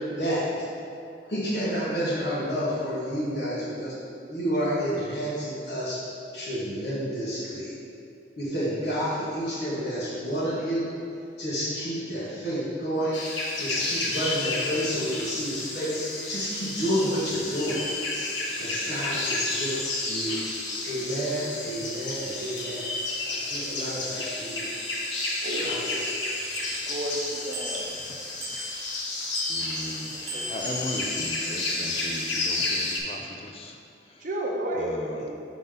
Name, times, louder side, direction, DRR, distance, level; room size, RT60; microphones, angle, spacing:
voice 1, 1.3-3.9 4.3-6.0 6.3-7.7 8.4-10.9 11.4-17.8 18.6-20.4 20.8-22.9 23.2-24.7 25.6-26.2, equal, 60° left, -9 dB, 1.4 m, -30 dB
voice 2, 3.7-4.2 18.8-19.0 23.7-24.0 25.4-26.0 26.9-27.8 30.3-30.5 34.2-35.4, right 1 dB, 45° right, -1 dB, 0.8 m, -33 dB
sound 1, 13.1-33.0, left 2 dB, 85° left, 1.1 m, -31 dB
Bicycle bell, 26.5-27.1 27.5-28.0 28.4-29.0 29.3-29.9 30.3-31.0, right 1 dB, 85° right, 1.2 m, -38 dB
voice 3, 29.5-33.8 34.1-34.3 34.7-35.3, left 1 dB, 30° left, 3 dB, 0.5 m, -37 dB
6.0 x 5.2 x 3.8 m, 2.7 s
head